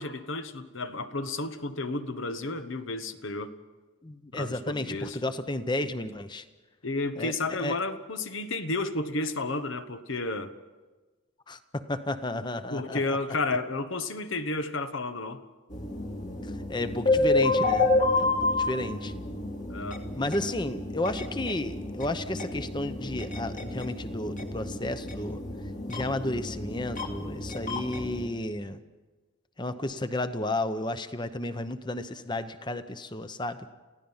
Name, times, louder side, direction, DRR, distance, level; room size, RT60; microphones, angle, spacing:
voice 1, 0.0-3.6 4.3-5.2 6.8-10.5 12.7-15.4 19.7-20.0, left 2 dB, 70° left, 10 dB, 1.2 m, -32 dB
voice 2, 4.0-6.4 7.2-7.3 7.6-7.8 11.5-13.2 16.7-17.9 18.2-18.3 18.6-19.1 20.2-25.4 25.9-28.8 29.6-33.7, left 1 dB, 20° left, 11 dB, 0.8 m, -32 dB
sound 1, 15.7-28.3, left 2 dB, 40° left, 1.8 m, -30 dB
28.5 x 16.0 x 5.6 m, 1.3 s
head